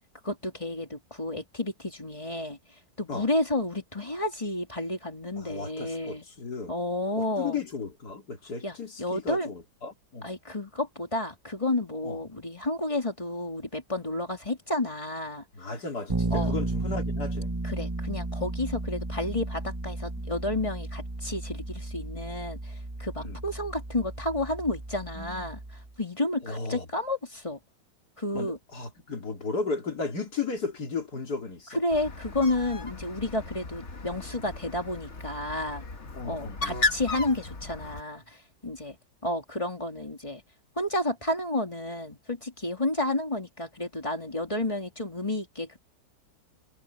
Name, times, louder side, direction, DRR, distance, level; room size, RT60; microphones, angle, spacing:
voice 1, 0.2-2.6 3.0-6.2 6.7-7.6 8.6-9.5 10.2-15.4 16.3-16.6 17.6-25.6 26.0-27.6 28.2-28.6 31.7-35.9 36.2-38.4 38.6-39.0 39.2-40.4 40.8-45.8, left 2 dB, 15° left, 3.1 m, -31 dB
voice 2, 5.4-6.7 7.4-10.3 12.0-12.2 15.5-17.5 23.2-23.4 25.2-25.5 26.4-26.9 28.3-31.8 36.1-36.8, left 4 dB, 60° left, 3.6 m, -35 dB
Bass guitar, 16.1-25.9, right 2 dB, 15° right, 0.9 m, -34 dB
Bird, 31.9-38.0, left 3 dB, 40° left, 2.0 m, -35 dB
omnidirectional pair, 1.9 m